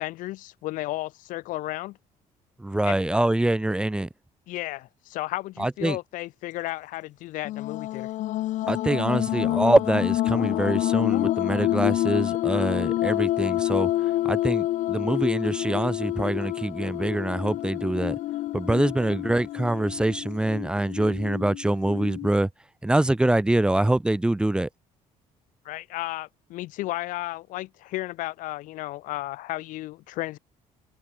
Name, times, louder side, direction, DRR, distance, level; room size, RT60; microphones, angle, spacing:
voice 1, 0.0-2.0 2.8-3.0 4.5-8.1 25.6-30.4, left 17 dB, 85° left, 6.5 m, -33 dB
voice 2, 2.6-4.1 5.6-6.0 8.7-18.1 18.5-22.5 22.8-24.7, right 1 dB, 5° right, 1.6 m, -24 dB
sound 1, 7.5-22.3, left 15 dB, 70° left, 2.1 m, -27 dB
cardioid pair, 165°, 13 cm